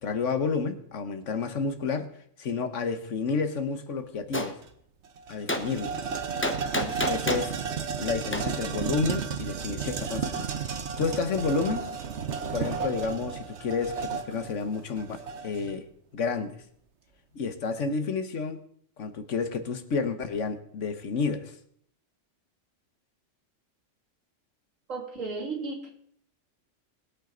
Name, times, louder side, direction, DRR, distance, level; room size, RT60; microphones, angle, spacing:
voice 1, 0.0-2.1 2.4-4.6 5.3-6.0 6.7-7.6 8.0-10.4 10.7-11.9 12.5-15.2 15.4-15.9 16.1-16.6 17.3-18.6 19.0-21.6, left 4 dB, 70° left, 9 dB, 1.4 m, -30 dB
Gunshot gunfire, 4.3-4.5 5.5-5.6 6.4-7.5 8.3-8.4, left 1 dB, 10° left, 0.8 m, -28 dB
sound 1, 4.6-4.7 5.0-15.7, right 6 dB, 60° right, 1.2 m, -33 dB
voice 2, 24.9-25.9, right 3 dB, 85° right, 0 dB, 3.0 m, -34 dB
20.5 x 8.4 x 3.9 m, 0.64 s
omnidirectional pair, 1.3 m